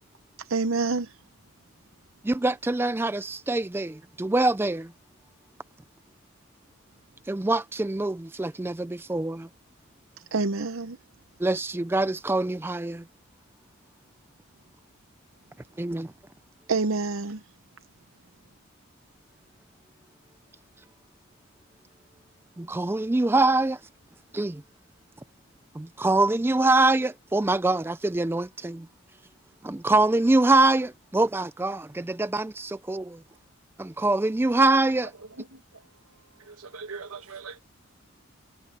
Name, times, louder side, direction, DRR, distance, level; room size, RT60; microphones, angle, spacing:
voice 1, 0.4-1.2 10.3-11.0 16.7-17.4, right 3 dB, 65° right, 0.7 m, -27 dB
voice 2, 2.2-4.9 7.3-9.5 11.4-13.0 15.8-16.1 22.6-23.8 24.3-24.6 25.8-28.9 29.6-33.2 33.8-35.1, right 2 dB, 10° right, 0.3 m, -24 dB
voice 3, 35.1-37.6, right 4 dB, 85° right, 1.6 m, -43 dB
head